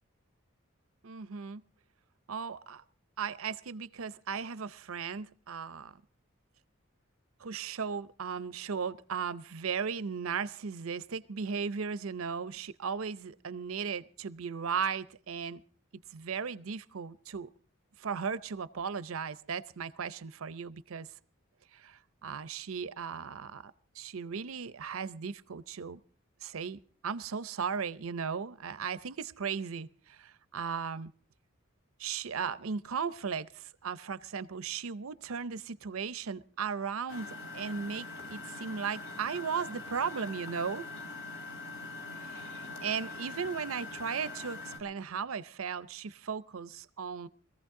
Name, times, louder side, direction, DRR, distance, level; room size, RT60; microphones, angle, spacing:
voice 1, 1.0-1.6 2.3-2.8 3.2-6.0 7.4-15.6 16.1-17.5 18.0-21.1 21.7-26.0 26.4-31.1 32.0-40.9 42.2-47.3, right 6 dB, 85° right, 0.6 m, -36 dB
Engine, 37.1-44.8, left 3 dB, 65° left, 4.1 m, -43 dB
21.0 x 15.0 x 3.7 m
head